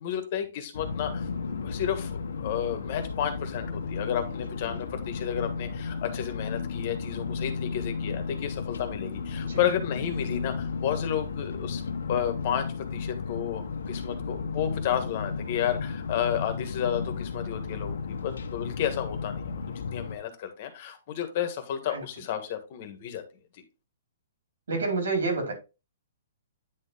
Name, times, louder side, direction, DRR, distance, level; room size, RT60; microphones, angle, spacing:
voice 1, 0.0-11.8 12.1-23.2 23.5-23.6, left 9 dB, 40° left, 1.5 m, -32 dB
sound 1, 0.7-20.2, left 5 dB, 90° left, 1.2 m, -34 dB
voice 2, 24.7-25.5, right 3 dB, 85° right, 4.5 m, -28 dB
9.5 x 4.3 x 3.6 m
hypercardioid pair, 165°, 0 cm